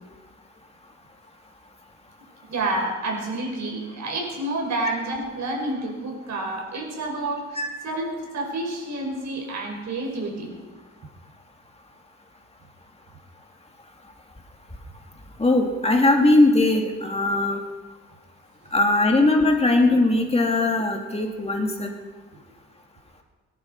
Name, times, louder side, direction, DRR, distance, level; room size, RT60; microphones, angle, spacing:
voice 1, 2.5-10.5, right 2 dB, 65° right, 1 dB, 5.7 m, -29 dB
voice 2, 15.4-17.6 18.7-21.9, left 2 dB, 20° left, 2 dB, 2.5 m, -20 dB
23.5 x 11.0 x 5.4 m, 1.3 s
cardioid pair, 90°, 30 cm